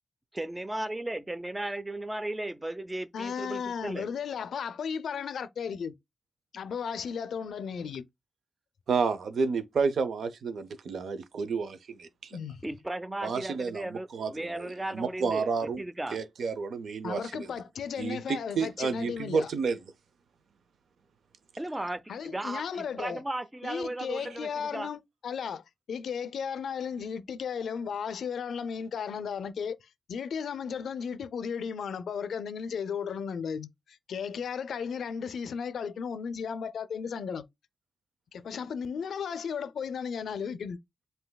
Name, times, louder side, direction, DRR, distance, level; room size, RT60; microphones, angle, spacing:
voice 1, 0.3-4.1 12.6-16.2 21.6-24.9, right 1 dB, 10° right, 0.4 m, -36 dB
voice 2, 3.1-6.0 6.5-8.1 12.3-12.6 17.0-19.5 22.1-23.2 23.6-37.4 38.3-40.8, left 6 dB, 85° left, 0.4 m, -35 dB
voice 3, 8.9-12.4 13.2-15.8 16.1-17.5 18.0-19.8, right 5 dB, 75° right, 0.5 m, -30 dB
7.7 x 2.6 x 2.2 m
wide cardioid pair, 140°, 0 cm